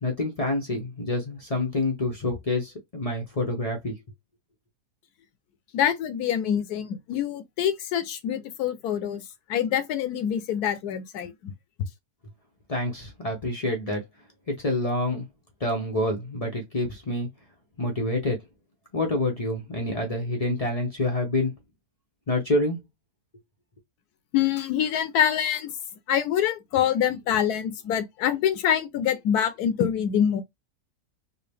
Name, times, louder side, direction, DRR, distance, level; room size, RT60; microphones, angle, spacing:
voice 1, 0.0-4.0 12.7-14.0 14.5-15.3 15.6-17.3 17.8-18.4 18.9-21.5 22.3-22.8, left 1 dB, 45° left, 0.5 m, -27 dB
voice 2, 5.7-9.2 9.5-11.5 24.3-25.7 26.1-30.4, left 9 dB, 75° left, 1.2 m, -25 dB
4.5 x 2.0 x 3.4 m
omnidirectional pair, 1.7 m